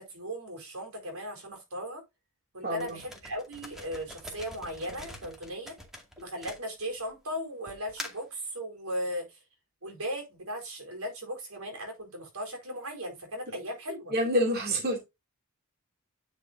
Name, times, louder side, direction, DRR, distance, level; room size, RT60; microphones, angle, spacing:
voice 1, 0.0-2.0 2.5-5.7 6.2-9.4 9.8-14.1, equal, 85° right, 4.7 m, -37 dB
sound 1, 2.8-7.1 7.7-8.3, left 1 dB, ahead, 2.3 m, -45 dB
voice 2, 14.1-15.0, equal, 45° right, 2.7 m, -27 dB
10.5 x 6.3 x 2.7 m
head